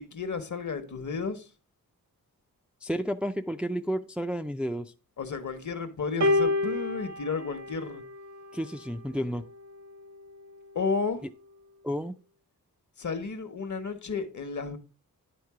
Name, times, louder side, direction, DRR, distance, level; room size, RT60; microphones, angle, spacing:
voice 1, 0.0-1.5 5.2-8.0 10.7-11.2 13.0-14.8, left 4 dB, 55° left, 1.1 m, -32 dB
voice 2, 2.8-4.9 8.5-9.5 11.8-12.2, equal, 5° right, 0.4 m, -31 dB
sound 1, 6.2-8.7 9.7-9.9, left 2 dB, 55° right, 0.9 m, -28 dB
9.6 x 3.6 x 4.8 m
wide cardioid pair, 80°, 35 cm